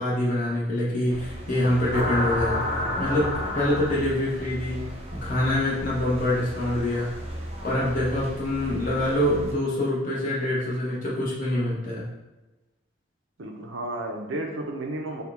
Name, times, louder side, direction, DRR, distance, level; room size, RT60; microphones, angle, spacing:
voice 1, 0.0-2.6 3.0-4.8 5.2-7.1 7.6-12.0, left 1 dB, 40° left, -6 dB, 1.0 m, -25 dB
sound 1, 1.1-9.5, equal, 30° right, 0.5 m, -37 dB
sound 2, 1.9-4.3, left 1 dB, 65° left, 0.7 m, -28 dB
voice 2, 8.6-9.0 13.4-15.2, right 1 dB, 85° right, 2 dB, 0.6 m, -33 dB
4.4 x 2.3 x 3.4 m, 1.1 s
head